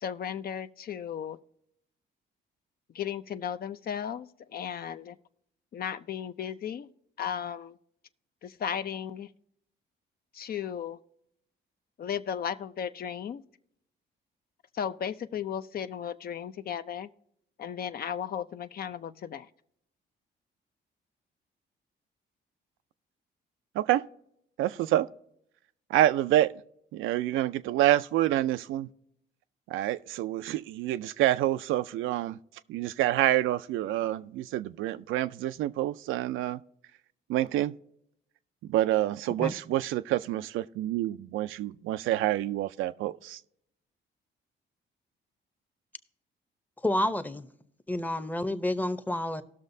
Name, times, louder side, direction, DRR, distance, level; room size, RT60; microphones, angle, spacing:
voice 1, 0.0-1.4 2.9-5.2 5.7-6.9 7.2-7.7 8.4-9.3 10.3-11.0 12.0-13.4 14.7-17.1 17.6-19.5, left 8 dB, 50° left, 0.5 m, -35 dB
voice 2, 23.7-24.1 24.6-25.1 25.9-26.5 26.9-28.9 29.7-32.4 32.7-36.6 37.3-37.8 38.6-43.4, right 14 dB, 85° right, 0.4 m, -27 dB
voice 3, 46.8-47.5 47.9-49.4, left 1 dB, 10° left, 0.7 m, -29 dB
18.5 x 6.4 x 2.7 m
cardioid pair, 90°, 20 cm